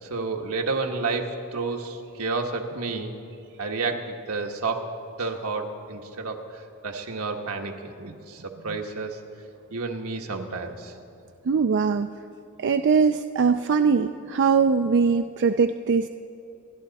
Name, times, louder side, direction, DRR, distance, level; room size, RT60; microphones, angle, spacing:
voice 1, 0.0-3.1 3.6-4.9 5.2-9.2 9.7-10.9, right 3 dB, 80° right, 2 dB, 1.5 m, -30 dB
voice 2, 11.5-12.1 12.6-16.1, right 5 dB, 55° right, 8 dB, 0.4 m, -21 dB
27.5 x 11.5 x 4.1 m, 2.6 s
head